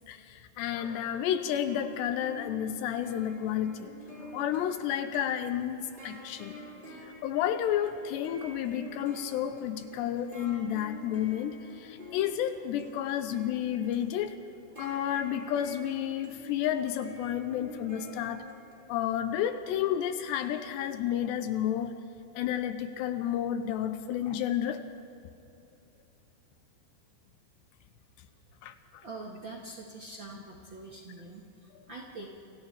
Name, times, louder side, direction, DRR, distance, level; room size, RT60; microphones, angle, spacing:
voice 1, 0.1-3.9 4.2-6.6 7.2-14.4 14.8-18.5 18.9-22.0 22.4-24.9 28.6-29.0, left 10 dB, 85° left, 9 dB, 2.8 m, -31 dB
sound 1, 1.7-19.0, left 1 dB, 10° right, 5.4 m, -48 dB
voice 2, 29.0-32.3, right 2 dB, 65° right, -2 dB, 1.1 m, -44 dB
30.0 x 26.5 x 3.4 m, 2.8 s
omnidirectional pair, 5.1 m